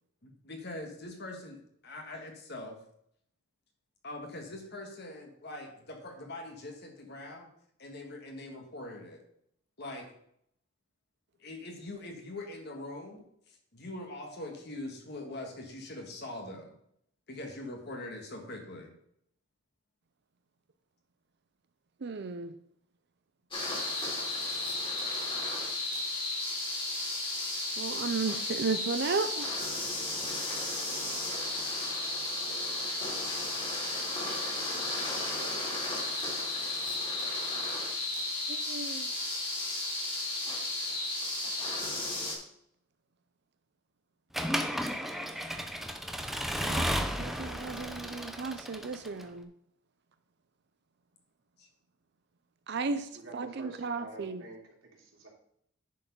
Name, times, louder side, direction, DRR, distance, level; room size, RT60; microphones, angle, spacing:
voice 1, 0.2-1.6 1.8-2.8 4.0-7.5 7.8-9.2 9.8-10.1 11.4-13.2 13.7-16.7 17.3-18.9 51.6-51.7, left 2 dB, 50° left, 1.6 m, -42 dB
voice 2, 22.0-22.5 27.8-29.5 38.5-39.1 46.6-49.5 52.7-53.1 53.3-54.4, right 4 dB, 55° right, 0.5 m, -34 dB
sound 1, 23.5-42.3, left 2 dB, 25° left, 2.7 m, -34 dB
Accelerating revving vroom / Mechanisms, 44.3-49.2, equal, ahead, 0.6 m, -33 dB
voice 3, 52.7-55.3, right 2 dB, 75° right, 2.9 m, -49 dB
10.5 x 4.7 x 5.4 m
head